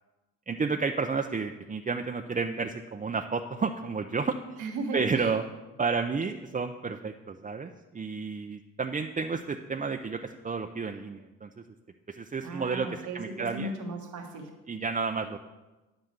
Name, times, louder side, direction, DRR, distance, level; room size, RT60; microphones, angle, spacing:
voice 1, 0.5-4.4 4.9-5.4 5.8-11.5 12.1-12.9 13.1-13.7 14.7-15.4, right 4 dB, 25° right, 5 dB, 0.6 m, -31 dB
voice 2, 4.6-5.4 12.4-14.6, right 2 dB, 85° right, 3 dB, 1.4 m, -36 dB
9.0 x 5.9 x 6.7 m, 1.1 s
supercardioid pair, 60°, 29 cm